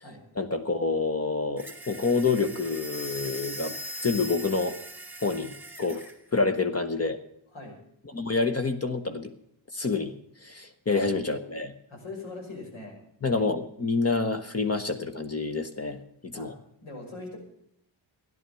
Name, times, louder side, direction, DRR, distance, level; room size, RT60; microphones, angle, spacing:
voice 1, 0.4-3.8 4.0-4.8 5.2-6.0 6.3-7.2 8.1-9.3 9.7-10.1 10.4-11.7 13.2-16.5, left 4 dB, 30° left, 8 dB, 1.2 m, -28 dB
sound 1, 1.6-6.2, equal, 5° right, 2.1 m, -40 dB
voice 2, 11.9-13.0 16.3-16.5 16.8-17.4, left 2 dB, 85° left, 0 dB, 6.0 m, -41 dB
13.5 x 11.0 x 7.0 m, 0.71 s
wide cardioid pair, 110°, 47 cm